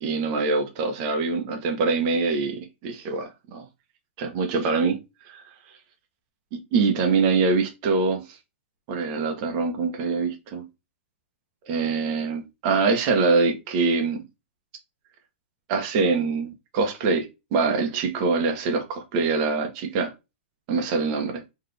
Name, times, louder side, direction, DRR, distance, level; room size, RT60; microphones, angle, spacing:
voice 1, 0.0-3.6 4.2-5.0 5.3-5.4 6.7-8.2 8.9-10.7 11.7-14.2 15.7-20.1 20.7-21.4, right 4 dB, 30° right, 0.9 m, -24 dB
4.1 x 3.1 x 3.3 m
supercardioid pair, 170°, 7 cm